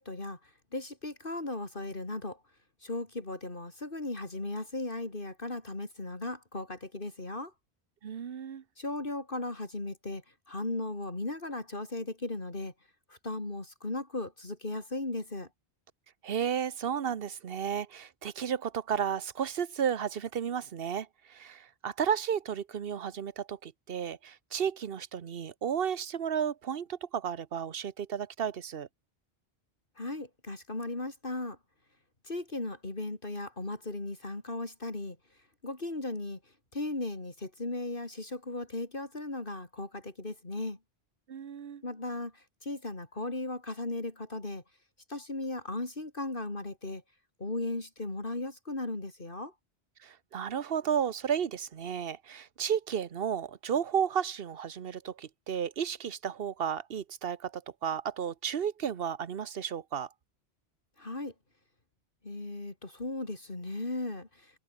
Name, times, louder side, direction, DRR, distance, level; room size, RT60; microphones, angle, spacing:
voice 1, 0.0-2.4 2.8-7.5 8.8-12.7 13.1-15.5 30.0-31.6 32.2-35.2 35.6-36.4 36.7-40.8 41.8-44.6 45.1-47.0 47.4-49.5 61.0-61.3 62.2-64.6, left 2 dB, 55° left, 3.6 m, -37 dB
voice 2, 8.0-8.6 16.2-28.9 41.3-41.8 50.0-60.1, right 8 dB, 65° right, 1.1 m, -33 dB
omnidirectional pair, 1.1 m